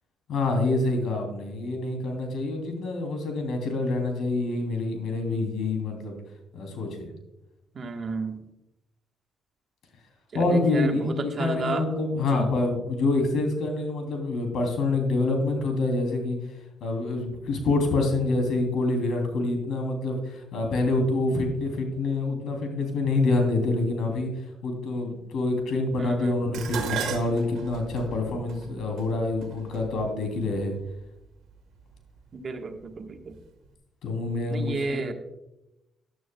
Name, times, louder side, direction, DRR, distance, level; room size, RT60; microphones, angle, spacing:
voice 1, 0.3-6.2 6.5-7.1 10.3-16.4 16.8-30.7 34.0-35.0, left 2 dB, 70° left, 4 dB, 3.0 m, -26 dB
voice 2, 7.7-8.4 10.3-11.8 12.3-12.5 26.0-26.4 32.3-33.4 34.5-35.1, right 3 dB, 45° right, 4 dB, 1.3 m, -32 dB
Dishes pots and pans, 26.5-30.9 31.8-32.2 32.6-33.4 33.7-33.8, right 7 dB, 80° right, 1.4 m, -36 dB
13.5 x 11.0 x 2.3 m, 0.91 s
cardioid pair, 90°, 0 cm